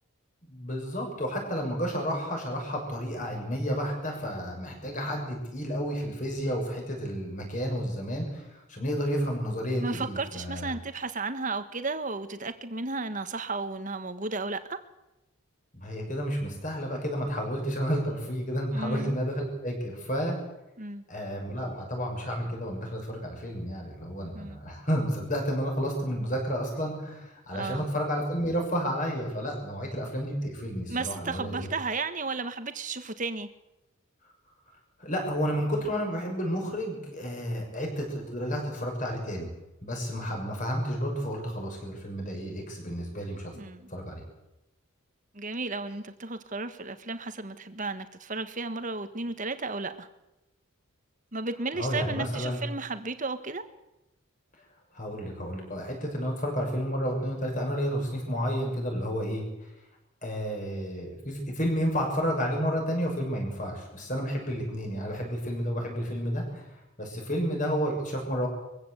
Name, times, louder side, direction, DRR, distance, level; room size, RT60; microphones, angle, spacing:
voice 1, 0.5-10.7 15.7-20.4 21.1-31.7 35.0-39.5 39.8-43.5 43.9-44.2 51.7-52.6 54.9-59.7 60.2-66.7 67.0-68.5, equal, 35° left, 6.6 m, -31 dB
voice 2, 9.8-14.8 18.7-19.1 20.8-21.0 24.3-24.6 27.5-27.8 30.9-33.5 43.5-43.9 45.3-50.1 51.3-53.6, right 3 dB, 35° right, 1.5 m, -34 dB
23.0 x 16.0 x 8.1 m
head